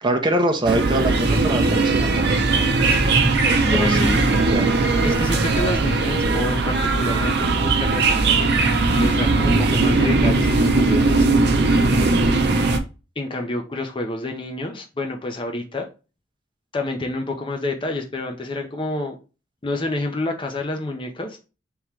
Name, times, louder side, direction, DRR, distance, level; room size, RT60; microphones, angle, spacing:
voice 1, 0.0-2.4 3.6-4.8, right 1 dB, 25° right, 0.7 m, -24 dB
sound 1, 0.6-12.8, right 3 dB, 60° right, 0.7 m, -19 dB
voice 2, 3.7-4.2 5.0-8.5 8.9-11.3 13.2-15.9 16.7-19.2 19.6-21.4, left 2 dB, 25° left, 0.6 m, -28 dB
3.6 x 3.0 x 4.5 m
head